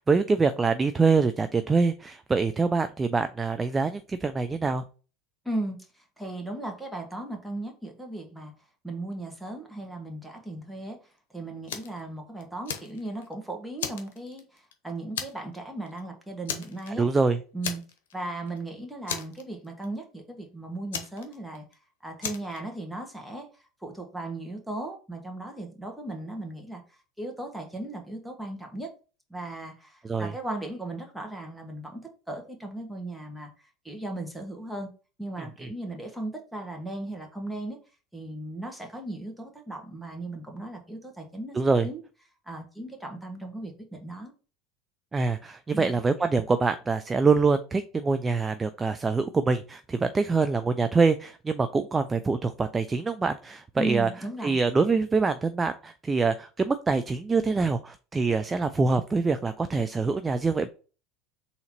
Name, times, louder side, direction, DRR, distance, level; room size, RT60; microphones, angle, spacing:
voice 1, 0.0-4.8 17.0-17.4 30.0-30.3 35.6-35.7 41.5-41.9 45.1-54.1 54.4-60.7, right 4 dB, 20° right, 10 dB, 0.4 m, -25 dB
voice 2, 5.4-5.8 6.2-8.5 8.8-11.0 11.3-17.1 17.5-17.8 18.1-21.6 22.0-23.5 23.8-26.8 27.2-28.9 29.3-32.0 32.3-34.9 35.2-37.8 38.1-41.6 41.8-42.0 42.5-44.3 45.7-46.0 53.8-54.6, right 2 dB, 5° right, 2 dB, 1.3 m, -36 dB
Fire, 11.7-12.0 12.4-13.3 13.8-14.7 15.2-15.6 15.9-16.0 16.5-17.2 17.6-18.2 18.5-18.6 19.1-19.9 20.9-21.7 22.2-22.6, left 8 dB, 80° left, 0.8 m, -35 dB
3.9 x 2.8 x 4.3 m, 0.35 s
hypercardioid pair, 85°, 0 cm